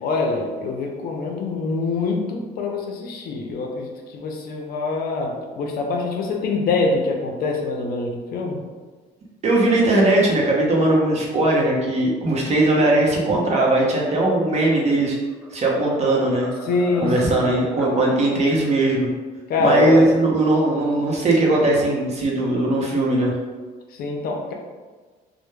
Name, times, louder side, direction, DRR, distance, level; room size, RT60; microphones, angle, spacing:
voice 1, 0.0-8.6 16.6-17.6 19.5-20.1 23.9-24.5, left 3 dB, 60° left, 2 dB, 0.4 m, -24 dB
voice 2, 9.4-15.2 15.5-16.5 17.0-19.1 19.6-23.3, right 2 dB, 40° right, -2 dB, 0.6 m, -19 dB
sound 1, 15.1-15.5 15.9-18.0, right 1 dB, ahead, 0.3 m, -37 dB
2.1 x 2.0 x 3.1 m, 1.4 s
cardioid pair, 110°, 17 cm